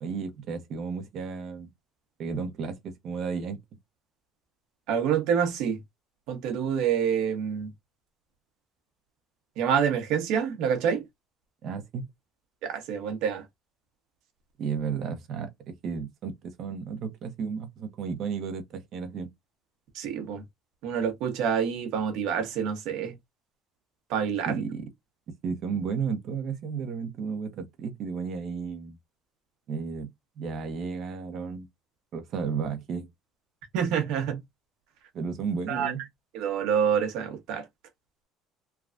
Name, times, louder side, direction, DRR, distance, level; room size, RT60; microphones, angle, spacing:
voice 1, 0.0-1.7 2.2-3.6 11.6-12.0 14.6-19.3 24.4-24.9 25.4-29.0 29.7-30.1 30.4-31.7 32.1-33.1 35.1-36.0, right 6 dB, 55° right, 0.8 m, -33 dB
voice 2, 4.9-5.8 6.3-7.7 9.6-11.0 12.6-13.4 19.9-20.4 20.8-23.1 24.1-24.6 33.7-34.4 35.7-35.9 36.3-37.6, right 7 dB, 75° right, 1.0 m, -27 dB
3.3 x 2.3 x 2.5 m
cardioid pair, 120°, 0 cm